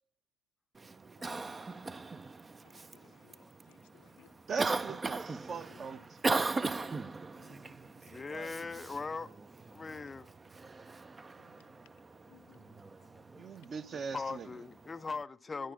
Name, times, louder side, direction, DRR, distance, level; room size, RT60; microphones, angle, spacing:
Cough, 0.7-15.2, right 3 dB, 20° right, 0.6 m, -40 dB
voice 1, 2.6-4.3 6.9-8.2 11.4-11.7 12.3-13.1 13.4-13.5 15.6-15.7, left 15 dB, 70° left, 0.8 m, -65 dB
voice 2, 4.5-6.9 8.3-8.6 13.4-14.6, right 5 dB, 40° right, 1.1 m, -41 dB
voice 3, 8.1-9.3 9.7-10.3 14.1-15.7, left 4 dB, 20° left, 0.5 m, -40 dB
17.0 x 10.5 x 3.8 m
hypercardioid pair, 75°, 0 cm